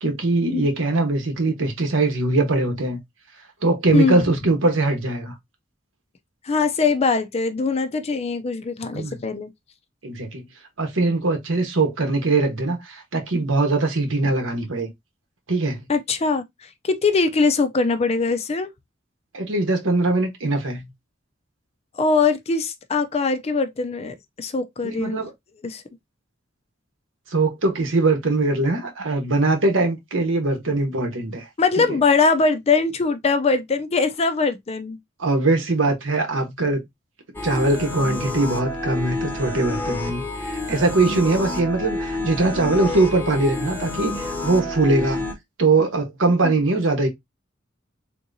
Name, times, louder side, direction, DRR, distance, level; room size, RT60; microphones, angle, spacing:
voice 1, 0.0-3.0 3.6-5.3 8.9-9.2 10.0-10.4 10.8-14.9 15.5-15.8 19.3-20.9 24.8-25.3 27.3-31.5 31.8-32.0 35.2-36.8 37.4-45.2 45.6-47.1, right 2 dB, 80° right, 1.1 m, -21 dB
voice 2, 3.9-4.2 6.4-9.5 15.9-18.7 21.9-25.2 25.6-25.8 31.6-35.0 46.4-46.5, left 4 dB, 30° left, 0.4 m, -22 dB
sound 1, 37.3-45.3, left 2 dB, 10° left, 0.8 m, -29 dB
3.6 x 2.8 x 2.6 m
head